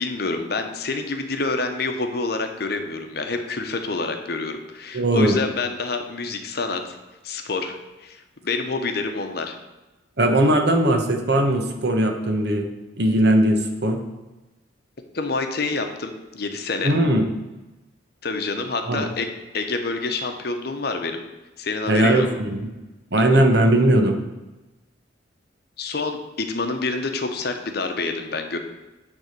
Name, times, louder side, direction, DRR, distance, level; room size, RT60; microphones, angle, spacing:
voice 1, 0.0-7.0 7.2-9.6 15.1-16.9 18.2-21.2 21.6-22.3 25.8-28.6, left 3 dB, 55° left, 5 dB, 0.9 m, -27 dB
voice 2, 4.9-5.4 10.2-12.6 13.0-14.0 16.8-17.3 18.8-19.0 21.9-22.7 23.1-24.2, right 1 dB, 60° right, 4 dB, 1.1 m, -19 dB
9.5 x 3.6 x 6.6 m, 1.1 s
head